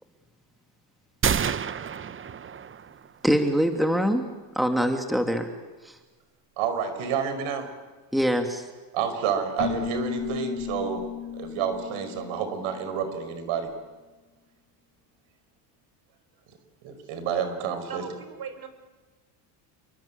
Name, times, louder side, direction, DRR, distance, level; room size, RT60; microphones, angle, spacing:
sound 1, 1.2-3.1, right 7 dB, 25° right, 0.9 m, -28 dB
voice 1, 3.2-4.2 4.5-5.5 5.8-6.0 8.1-8.7, equal, ahead, 5 dB, 2.7 m, -23 dB
voice 2, 6.6-7.7 8.9-11.0 11.3-13.7 16.8-18.0, right 7 dB, 75° right, 9 dB, 5.4 m, -29 dB
Keyboard (musical), 9.6-13.2, left 9 dB, 35° left, 6.7 m, -35 dB
voice 3, 17.8-18.7, right 7 dB, 45° right, 10 dB, 4.8 m, -38 dB
29.0 x 23.0 x 8.8 m, 1.3 s
supercardioid pair, 95°, 50 cm